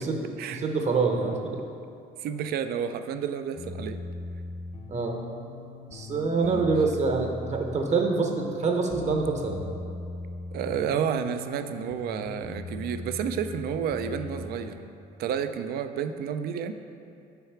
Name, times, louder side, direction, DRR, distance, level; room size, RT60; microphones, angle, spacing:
voice 1, 0.1-1.5 4.9-5.2 5.9-9.6, right 4 dB, 40° right, 2 dB, 0.8 m, -26 dB
voice 2, 2.2-4.0 6.4-6.7 10.5-14.8 15.2-16.7, right 8 dB, 65° right, 10 dB, 0.4 m, -30 dB
sound 1, 3.5-14.9, left 3 dB, 40° left, 0.6 m, -39 dB
6.9 x 4.6 x 4.5 m, 2.5 s
cardioid pair, 110°, 17 cm